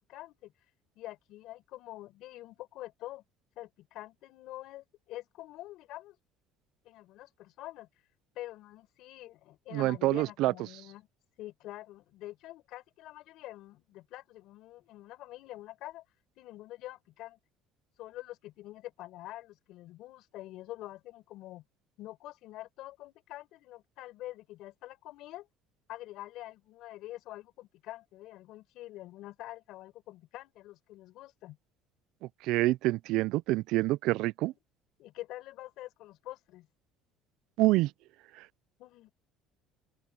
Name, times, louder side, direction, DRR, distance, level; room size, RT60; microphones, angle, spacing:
voice 1, 0.1-0.5 1.0-3.2 3.6-6.2 6.8-7.9 8.3-11.1 11.4-16.1 16.4-17.4 18.0-21.6 22.0-25.5 25.9-31.6 34.4-34.6 35.0-36.7 38.8-39.1, left 16 dB, 60° left, 5.9 m, -46 dB
voice 2, 9.7-10.5 32.4-34.5 37.6-37.9, right 18 dB, 65° right, 0.3 m, -26 dB
open air
cardioid pair, 155°, 0 cm